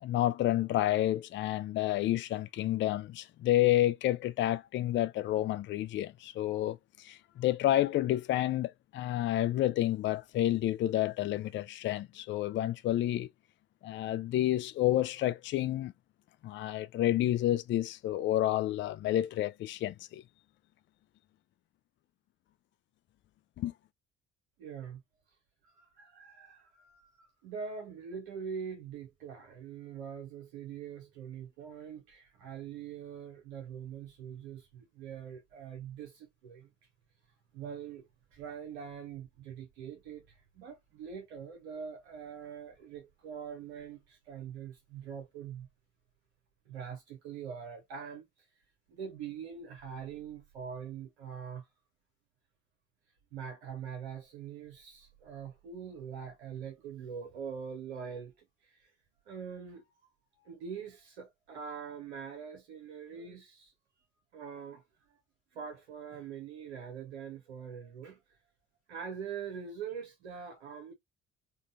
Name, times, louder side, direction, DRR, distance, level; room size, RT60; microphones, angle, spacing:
voice 1, 0.0-13.3 13.8-15.9 16.4-20.2 23.6-23.7, left 13 dB, 35° left, 0.4 m, -30 dB
voice 2, 24.6-25.0 25.6-36.7 37.5-45.7 46.7-48.5 48.9-51.7 53.3-58.9 59.3-59.9 60.3-63.7 64.3-64.8 65.5-68.4 68.9-70.9, right 7 dB, 75° right, 0.8 m, -43 dB
3.7 x 2.2 x 2.5 m
figure-of-eight pair, 50°, 34 cm